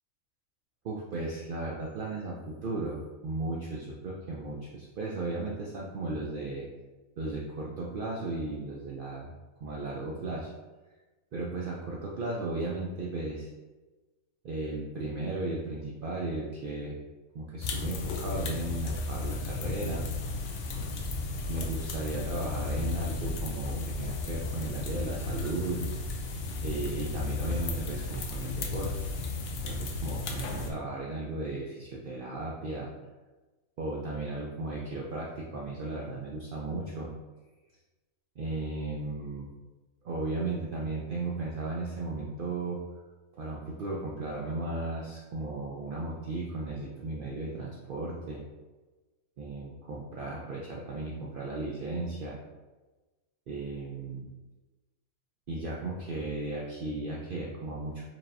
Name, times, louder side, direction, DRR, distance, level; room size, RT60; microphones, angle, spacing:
voice 1, 0.8-6.7 7.2-9.3 9.6-10.5 11.3-13.5 14.4-17.0 17.3-20.1 21.5-25.8 26.6-29.1 29.6-32.9 33.8-37.1 38.4-39.5 40.0-42.8 43.3-48.4 49.4-52.4 53.5-54.3 55.5-58.0, right 2 dB, 80° right, -3 dB, 0.4 m, -35 dB
sound 1, 17.6-30.7, left 3 dB, 65° left, 0.6 m, -34 dB
4.5 x 2.8 x 2.5 m, 1.2 s
omnidirectional pair, 1.4 m